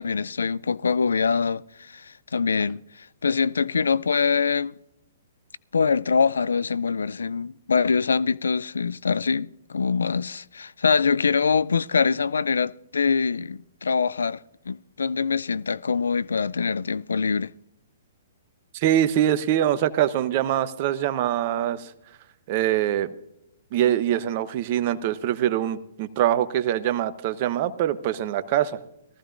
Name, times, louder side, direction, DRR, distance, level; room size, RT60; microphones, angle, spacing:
voice 1, 0.0-4.7 5.7-14.4 14.7-17.5, left 5 dB, 80° left, 0.3 m, -24 dB
voice 2, 18.7-21.9 22.5-23.1 23.7-28.8, right 11 dB, 45° right, 0.8 m, -23 dB
19.0 x 14.0 x 2.6 m
hypercardioid pair, 125°, 0 cm